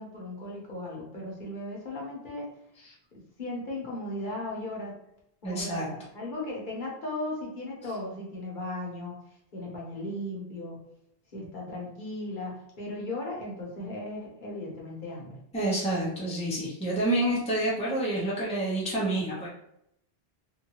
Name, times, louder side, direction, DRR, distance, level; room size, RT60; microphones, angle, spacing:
voice 1, 0.0-2.5 3.4-4.9 5.4-9.2 9.5-10.8 11.3-15.4, left 1 dB, 55° left, -3 dB, 1.1 m, -36 dB
voice 2, 5.4-5.9 15.5-19.5, right 1 dB, 5° left, -6 dB, 0.7 m, -28 dB
2.6 x 2.6 x 2.9 m, 0.76 s
omnidirectional pair, 1.0 m